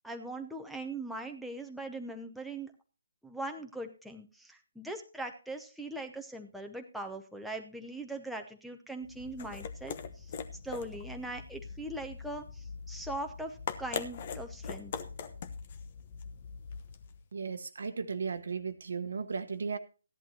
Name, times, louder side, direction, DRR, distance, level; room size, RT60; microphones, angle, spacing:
voice 1, 0.0-2.7 3.2-10.3 10.6-14.9, right 2 dB, ahead, 0.8 m, -41 dB
sound 1, 9.0-17.2, left 6 dB, 40° left, 1.0 m, -42 dB
voice 2, 17.3-19.8, right 5 dB, 65° right, 1.0 m, -35 dB
15.0 x 11.0 x 2.8 m
figure-of-eight pair, 145°, 0 cm